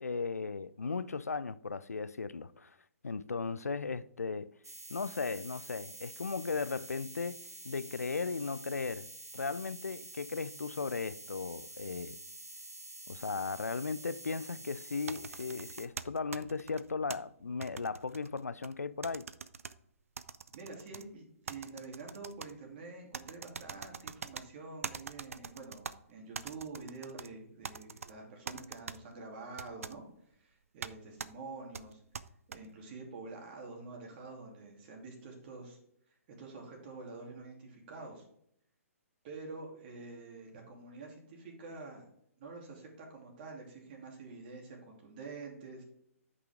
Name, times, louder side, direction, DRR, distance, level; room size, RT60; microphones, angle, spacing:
voice 1, 0.0-2.8 3.0-4.5 4.9-7.4 7.6-9.1 9.3-12.2 13.1-19.3, left 4 dB, 80° left, 0.4 m, -36 dB
sound 1, 4.6-15.9, right 2 dB, 90° right, 0.8 m, -48 dB
sound 2, 15.1-17.2 17.6-18.7 19.0-19.7 20.2-21.0 21.5-22.5 23.1-24.4 24.8-25.9 26.3-27.3 27.6-28.1 28.5-29.0 29.6-29.9 30.8-30.9 31.2-31.3 31.7-32.6, right 6 dB, 65° right, 0.5 m, -43 dB
voice 2, 20.5-35.8 36.1-38.3 39.2-42.1 42.4-45.8, right 3 dB, 40° right, 2.7 m, -47 dB
9.4 x 5.5 x 3.6 m
figure-of-eight pair, 125°, 8 cm